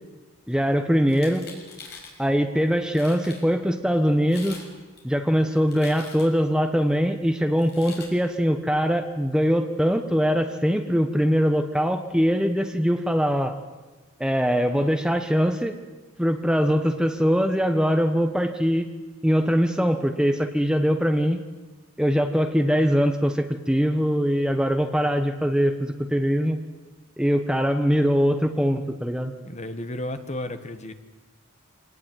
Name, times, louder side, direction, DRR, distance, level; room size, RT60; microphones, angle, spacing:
voice 1, 0.5-1.4 2.2-4.6 5.0-13.6 14.2-15.7 16.2-18.9 19.2-21.4 22.0-26.6 27.2-29.3, equal, 5° right, 6 dB, 1.2 m, -22 dB
sound 1, 1.1-2.2 2.7-2.8 2.9-3.4 4.2-4.7 5.0-6.5 7.6-8.1, left 4 dB, 50° left, 6.3 m, -43 dB
voice 2, 29.4-30.9, left 1 dB, 30° left, 9 dB, 1.5 m, -33 dB
26.0 x 19.0 x 9.3 m, 1.3 s
head